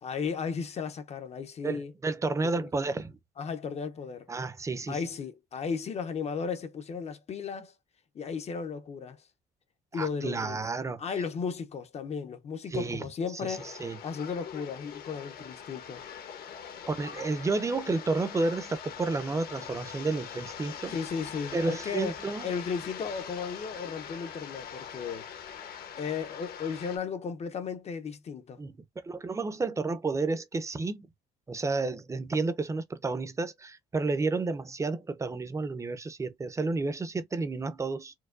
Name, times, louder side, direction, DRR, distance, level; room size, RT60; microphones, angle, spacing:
voice 1, 0.0-1.9 2.6-2.7 3.4-4.3 4.9-7.7 8.1-9.2 9.9-10.6 11.0-13.7 14.0-16.0 20.9-22.1 22.4-25.3 26.0-28.6, left 6 dB, 40° left, 0.6 m, -35 dB
voice 2, 1.6-3.2 4.3-5.0 9.9-11.0 12.7-13.0 13.4-14.0 16.9-20.9 21.5-22.5 28.6-28.7 29.0-31.1 31.5-38.1, right 3 dB, 15° right, 0.6 m, -31 dB
sound 1, 13.5-27.0, left 8 dB, 65° left, 1.0 m, -43 dB
4.6 x 2.1 x 2.4 m
cardioid pair, 110°, 17 cm